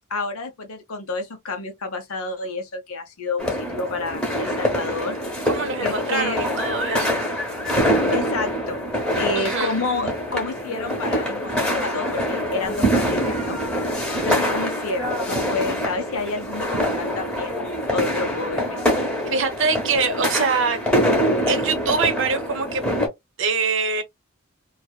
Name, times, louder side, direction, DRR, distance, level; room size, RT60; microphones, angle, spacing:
voice 1, 0.1-5.2 5.8-6.4 8.1-8.8 9.2-13.6 14.2-18.8, left 3 dB, 80° left, 0.9 m, -29 dB
sound 1, 3.4-23.1, equal, 5° left, 0.9 m, -24 dB
voice 2, 5.5-7.2 9.4-9.7 19.3-20.8 21.5-22.8 23.4-24.0, right 4 dB, 60° right, 0.7 m, -24 dB
2.7 x 2.4 x 2.3 m
head